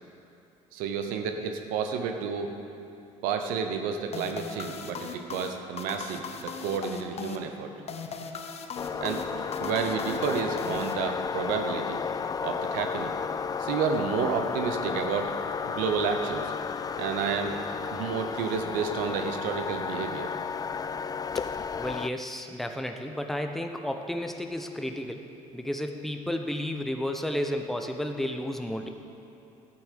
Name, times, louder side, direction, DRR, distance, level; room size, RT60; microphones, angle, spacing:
voice 1, 0.7-2.5 3.2-7.7 9.0-12.0 12.4-13.1 13.6-15.4 15.6-16.5 17.0-17.6 17.9-20.3, right 6 dB, 80° right, 6 dB, 0.9 m, -30 dB
sound 1, 4.1-11.5, left 5 dB, 45° left, 1.0 m, -39 dB
sound 2, 8.8-22.1, left 6 dB, 25° left, 0.4 m, -33 dB
voice 2, 21.8-28.9, left 1 dB, ahead, 4 dB, 1.0 m, -32 dB
11.0 x 8.7 x 6.6 m, 2.7 s
supercardioid pair, 75°, 14 cm